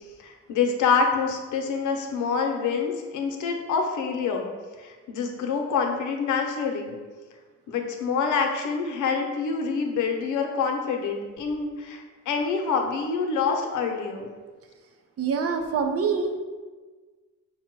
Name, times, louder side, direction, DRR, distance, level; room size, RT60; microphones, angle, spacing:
voice 1, 0.2-4.5 4.8-7.0 7.7-14.3, left 5 dB, 75° left, 3 dB, 0.8 m, -26 dB
voice 2, 15.2-16.4, right 5 dB, 50° right, 5 dB, 0.6 m, -25 dB
5.3 x 2.2 x 4.5 m, 1.4 s
cardioid pair, 90°, 30 cm